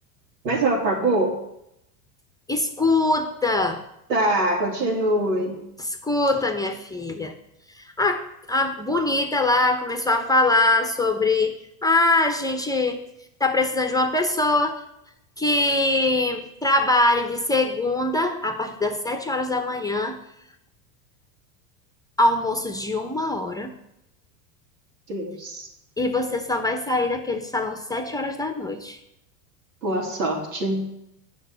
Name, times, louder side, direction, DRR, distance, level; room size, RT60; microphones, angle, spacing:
voice 1, 0.4-1.3 4.1-5.6 25.1-25.7 29.8-30.9, right 1 dB, 85° right, -1 dB, 3.4 m, -23 dB
voice 2, 2.5-3.8 5.8-7.3 8.0-8.2 8.5-13.0 13.4-14.8 15.4-20.2 22.2-23.7 26.0-29.0, left 2 dB, 5° left, 6 dB, 0.9 m, -23 dB
8.1 x 6.1 x 7.9 m, 0.81 s
supercardioid pair, 115°, 49 cm